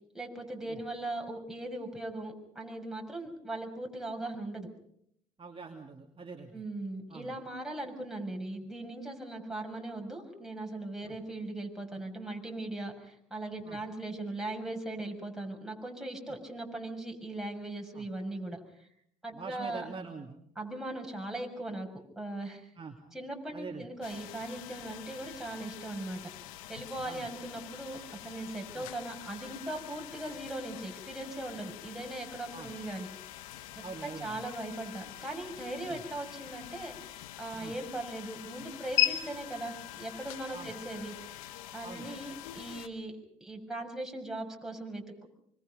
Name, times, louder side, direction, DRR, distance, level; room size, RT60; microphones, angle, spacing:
voice 1, 0.1-4.7 6.5-18.6 19.2-19.9 20.5-21.9 22.1-22.7 23.1-26.3 26.7-33.1 33.7-41.4 41.7-43.1 43.4-45.3, right 2 dB, 5° right, 1 dB, 6.6 m, -39 dB
voice 2, 5.4-6.6 7.1-7.4 11.1-11.2 13.6-13.8 17.9-18.0 19.3-20.4 22.8-23.0 23.5-23.8 27.0-27.3 28.7-28.9 32.5-32.7 33.8-34.4 35.9-36.0 37.6-37.7 40.5-40.7 41.8-42.1, right 4 dB, 30° right, 1 dB, 2.8 m, -44 dB
sound 1, 24.0-42.9, left 14 dB, 90° left, 1.2 m, -41 dB
25.0 x 24.5 x 5.3 m, 0.72 s
hypercardioid pair, 60°, 17 cm